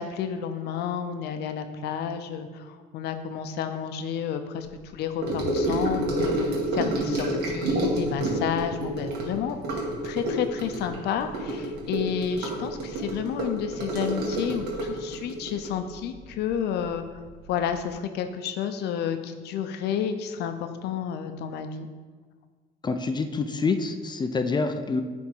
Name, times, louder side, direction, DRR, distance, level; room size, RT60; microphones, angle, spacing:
voice 1, 0.0-4.7 4.9-6.3 6.7-9.6 10.0-17.0 17.5-21.9, left 8 dB, 75° left, 8 dB, 0.6 m, -30 dB
Gurgling / Sink (filling or washing) / Trickle dribble, 5.2-16.9 17.1-17.5 17.7-17.8, right 1 dB, 75° right, 1.7 m, -29 dB
voice 2, 22.8-25.0, left 4 dB, 25° left, 7 dB, 0.5 m, -26 dB
8.7 x 3.5 x 4.5 m, 1.4 s
cardioid pair, 110°, 17 cm